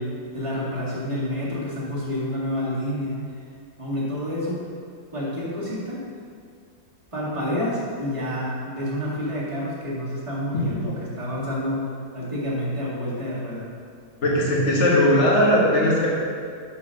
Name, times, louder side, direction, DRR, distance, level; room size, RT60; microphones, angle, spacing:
voice 1, 0.0-3.2 3.8-4.7 5.1-6.1 7.1-11.9 12.1-13.7, equal, 15° right, -8 dB, 1.8 m, -28 dB
voice 2, 14.2-16.1, left 1 dB, 40° left, -4 dB, 1.5 m, -19 dB
5.4 x 5.0 x 6.5 m, 2.2 s
omnidirectional pair, 2.1 m